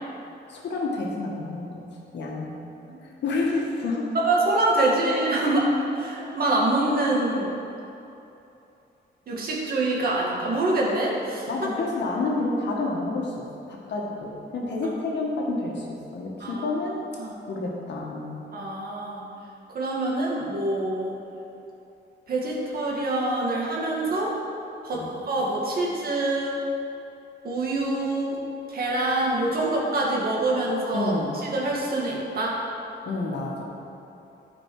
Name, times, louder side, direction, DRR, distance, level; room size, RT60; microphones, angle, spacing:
voice 1, 0.5-1.8 2.1-2.6 3.0-4.0 11.5-13.3 13.7-17.0 17.5-18.3 24.9-25.1 30.9-31.3 33.0-33.6, left 3 dB, 70° left, -2 dB, 1.6 m, -29 dB
voice 2, 4.1-7.5 9.3-11.5 16.4-16.7 17.2-17.4 18.5-19.2 19.7-21.2 22.3-24.3 24.8-26.6 27.4-28.4 28.7-32.6, right 2 dB, 55° right, -3 dB, 2.0 m, -25 dB
13.0 x 5.3 x 4.8 m, 2.8 s
wide cardioid pair, 145°, 18 cm